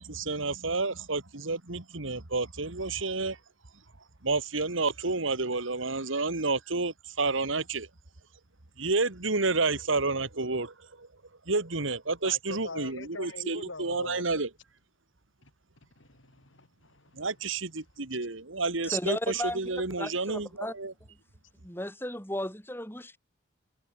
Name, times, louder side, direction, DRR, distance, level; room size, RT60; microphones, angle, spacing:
voice 1, 0.0-3.4 4.2-7.9 8.8-11.1 11.5-14.5 17.1-20.9, right 3 dB, 80° right, 2.1 m, -30 dB
voice 2, 12.2-14.2 15.4-15.5 16.0-17.3 18.9-19.0, left 3 dB, 75° left, 3.5 m, -43 dB
voice 3, 18.8-20.7 21.6-23.2, left 1 dB, 10° left, 6.6 m, -35 dB
head